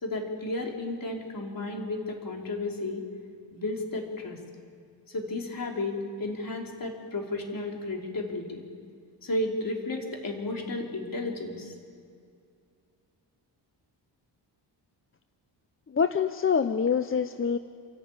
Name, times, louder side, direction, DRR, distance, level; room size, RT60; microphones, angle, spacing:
voice 1, 0.0-3.0 3.5-4.4 5.1-8.6 9.2-11.7, left 2 dB, 50° left, 1 dB, 3.5 m, -33 dB
voice 2, 15.9-17.6, left 6 dB, 30° left, 10 dB, 0.6 m, -25 dB
28.0 x 12.0 x 8.8 m, 2.3 s
wide cardioid pair, 105°, 42 cm